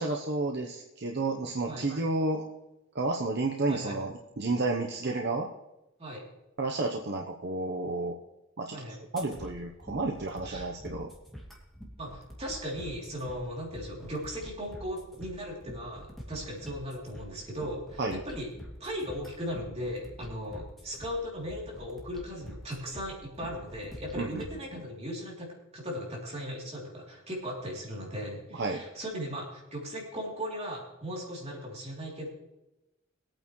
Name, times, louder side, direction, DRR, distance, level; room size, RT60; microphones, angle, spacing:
voice 1, 0.0-2.5 2.9-5.5 6.6-8.1 8.6-8.8 9.1-11.1 18.0-18.2 24.2-24.4 24.7-24.8 28.5-28.8, right 2 dB, 60° right, 1 dB, 0.9 m, -31 dB
sound 1, 9.2-24.6, equal, ahead, 2.4 m, -47 dB
voice 2, 12.0-18.5 18.8-32.3, equal, 35° right, -3 dB, 3.2 m, -37 dB
22.0 x 8.9 x 3.2 m, 0.95 s
head